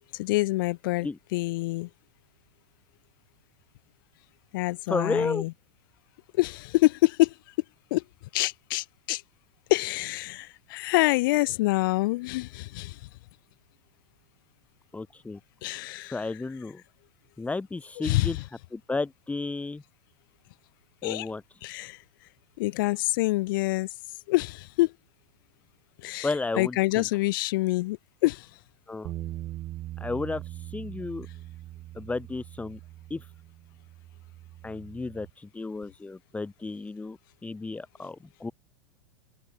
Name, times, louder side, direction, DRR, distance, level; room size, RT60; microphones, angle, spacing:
voice 1, 0.1-1.9 4.5-5.5 6.4-7.3 7.9-8.0 8.3-9.2 9.7-13.0 15.6-16.2 18.0-18.4 21.0-21.3 21.6-22.0 22.6-23.9 24.3-24.9 26.0-26.3 26.6-28.5, left 20 dB, 55° left, 0.6 m, -26 dB
voice 2, 4.9-5.4 14.9-15.4 16.0-16.8 17.4-18.4 18.7-19.8 21.0-21.4 26.2-27.1 28.9-29.1 30.0-31.3 31.9-32.8 33.1-33.3 34.6-38.5, left 3 dB, 10° left, 2.6 m, -33 dB
sound 1, 29.0-35.3, right 15 dB, 40° right, 5.9 m, -41 dB
open air
hypercardioid pair, 95°, 13 cm